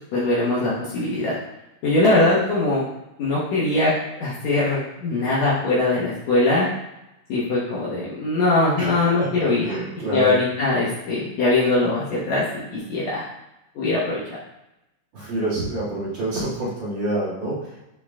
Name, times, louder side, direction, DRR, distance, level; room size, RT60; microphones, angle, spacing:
voice 1, 0.1-1.4 1.8-2.8 3.2-6.7 7.3-9.7 10.1-12.4 12.7-13.3 13.8-14.2, left 2 dB, 65° left, -7 dB, 2.5 m, -21 dB
voice 2, 2.0-2.4 8.7-10.4 15.1-17.8, right 1 dB, 40° right, -8 dB, 2.5 m, -28 dB
8.4 x 3.9 x 3.7 m, 0.90 s
omnidirectional pair, 3.5 m